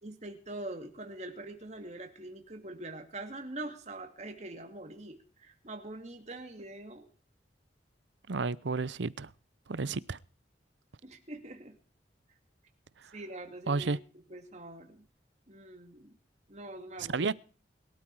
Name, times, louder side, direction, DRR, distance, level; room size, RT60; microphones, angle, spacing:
voice 1, 0.0-7.1 11.0-11.8 13.1-13.9 14.3-15.1 15.5-16.2 16.5-17.3, right 2 dB, 40° right, 2.5 m, -44 dB
voice 2, 8.3-9.3 9.7-10.2 13.7-14.0 17.1-17.3, right 4 dB, 80° right, 0.7 m, -31 dB
22.0 x 12.5 x 4.8 m
head